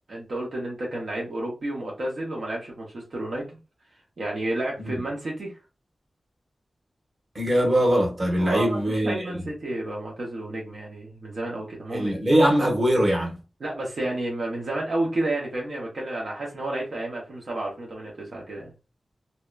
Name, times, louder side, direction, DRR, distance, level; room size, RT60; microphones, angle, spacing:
voice 1, 0.1-3.5 4.2-5.5 8.4-8.8 9.0-12.1 13.6-18.7, right 1 dB, 70° right, 0.8 m, -31 dB
voice 2, 7.3-9.3 11.9-13.4, equal, 40° right, 1.0 m, -21 dB
2.7 x 2.2 x 2.3 m
wide cardioid pair, 70°, 0 cm